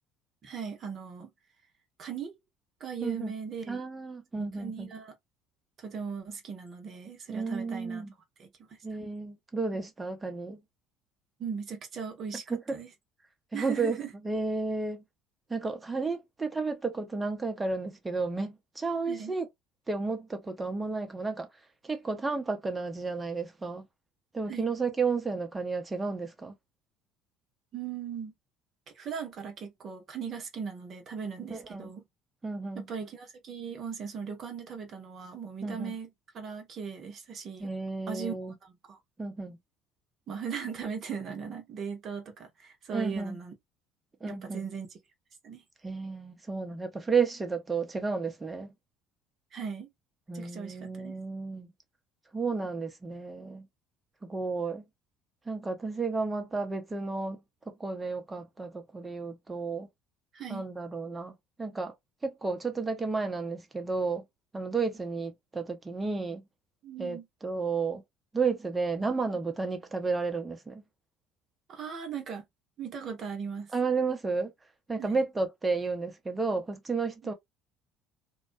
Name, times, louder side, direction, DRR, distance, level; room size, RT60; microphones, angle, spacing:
voice 1, 0.4-1.3 2.0-2.3 2.8-3.8 4.3-5.1 5.8-8.0 8.4-8.7 11.4-12.9 13.5-14.1 19.1-19.3 24.5-24.7 27.7-28.3 28.9-32.0 32.7-37.7 38.1-39.0 40.3-43.5 44.3-45.0 45.4-45.6 49.5-49.9 50.3-51.2 60.3-60.7 66.8-67.3 71.7-72.4 72.8-73.7 75.0-75.2, right 6 dB, 50° right, 0.9 m, -38 dB
voice 2, 3.0-3.3 3.7-4.9 7.3-8.1 8.8-10.6 12.5-12.6 13.5-14.0 14.2-15.0 15.5-19.5 19.9-21.5 21.8-23.9 24.3-26.5 31.5-31.9 32.4-32.9 35.6-35.9 37.6-38.5 39.2-39.6 42.9-43.4 44.2-44.7 45.8-48.7 50.3-51.7 52.3-53.7 54.2-54.8 55.5-57.4 57.8-59.9 60.5-61.9 62.2-64.2 64.5-66.4 67.0-68.0 68.3-70.8 73.7-74.5 74.9-77.3, right 4 dB, 20° right, 0.8 m, -32 dB
2.2 x 2.1 x 2.5 m
hypercardioid pair, 65°, 0 cm